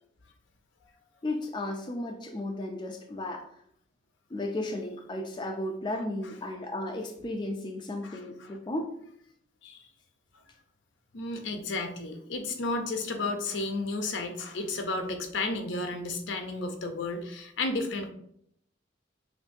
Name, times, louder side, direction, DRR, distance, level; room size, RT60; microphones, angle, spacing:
voice 1, 1.2-3.5 4.3-9.0, left 1 dB, 25° left, 2 dB, 0.4 m, -34 dB
voice 2, 8.0-8.6 9.6-9.9 11.1-18.1, left 2 dB, 70° left, 5 dB, 0.7 m, -33 dB
6.0 x 2.6 x 2.6 m, 0.70 s
head